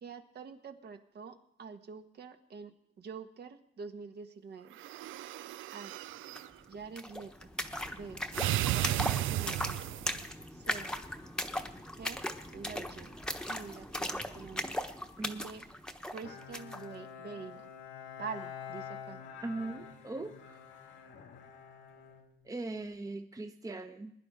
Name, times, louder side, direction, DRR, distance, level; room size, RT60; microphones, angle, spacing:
voice 1, 0.0-4.8 5.7-5.9 6.7-7.5 7.9-8.2 8.7-9.5 10.5-10.9 12.0-12.2 12.5-13.1 13.5-14.8 15.2-15.6 16.1-17.7 18.2-19.2, right 5 dB, 55° right, 6 dB, 1.4 m, -46 dB
sound 1, 4.7-6.5 8.3-10.3, right 14 dB, 80° right, 0.4 m, -34 dB
sound 2, 6.4-6.5 6.7-16.9, left 1 dB, 5° left, 1.1 m, -38 dB
Bowed string instrument, 16.2-22.9, left 8 dB, 80° left, 1.6 m, -47 dB
voice 2, 19.4-20.6 22.4-24.1, right 2 dB, 15° right, 7 dB, 0.8 m, -40 dB
20.5 x 10.5 x 3.7 m, 0.74 s
cardioid pair, 90°, 20 cm